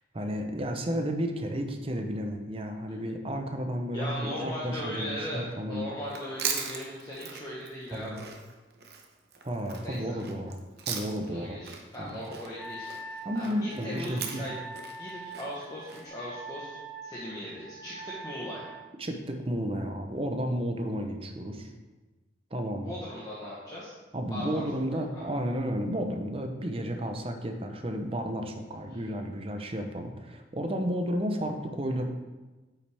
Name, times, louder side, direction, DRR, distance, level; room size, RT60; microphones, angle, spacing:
voice 1, 0.1-5.9 7.9-8.3 9.4-10.6 10.9-11.6 12.0-12.2 13.2-14.5 19.0-21.7 22.5-22.9 24.1-32.1, equal, 30° right, 5 dB, 0.7 m, -32 dB
voice 2, 3.9-8.2 9.8-10.2 11.2-14.5 15.0-18.7 22.8-23.9 24.3-24.6 25.1-25.2 28.9-29.0, equal, 20° left, -7 dB, 1.1 m, -38 dB
Chewing mastication, 6.0-11.4 11.6-16.0, right 7 dB, 60° right, 0.8 m, -39 dB
Wind instrument woodwind instrument, 12.6-18.9, right 2 dB, 40° left, 2.2 m, -43 dB
8.5 x 5.8 x 3.4 m, 1.2 s
head